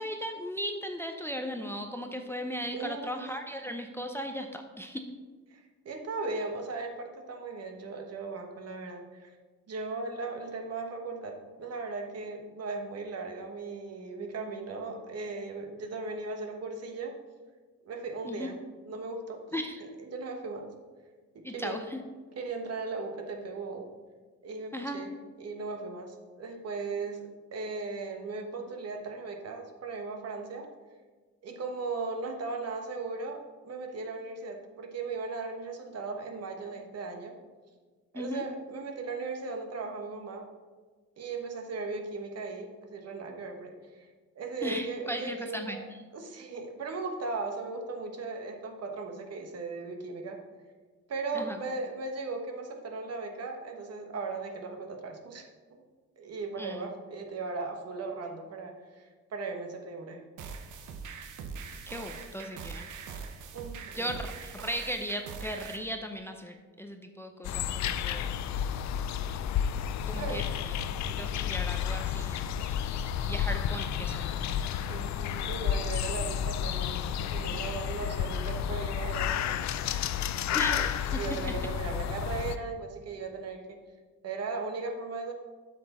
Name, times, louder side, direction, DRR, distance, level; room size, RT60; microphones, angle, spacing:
voice 1, 0.0-5.0 18.2-18.5 19.5-19.8 21.4-22.0 24.7-25.0 38.1-38.4 44.6-45.8 51.3-51.6 56.6-56.8 61.9-62.9 63.9-68.3 70.1-70.4 71.1-72.8 73.2-74.7 80.5-81.0, equal, 10° left, 5 dB, 0.6 m, -37 dB
voice 2, 2.7-3.3 5.5-9.3 9.7-17.2 17.8-18.6 18.8-19.4 20.0-20.7 21.3-21.8 22.4-23.9 24.4-30.7 31.4-37.4 38.1-40.5 41.2-44.1 44.3-45.8 46.1-50.4 51.1-55.4 55.7-55.8 56.2-60.2 63.5-64.1 70.1-70.5 74.9-79.6 80.5-83.8 84.2-85.3, right 3 dB, 55° right, 3 dB, 1.2 m, -37 dB
sound 1, 60.4-65.8, right 5 dB, 80° right, 0.9 m, -42 dB
sound 2, 67.4-82.6, left 9 dB, 65° left, 0.5 m, -31 dB
7.7 x 5.9 x 4.2 m, 1.4 s
cardioid pair, 90°, 30 cm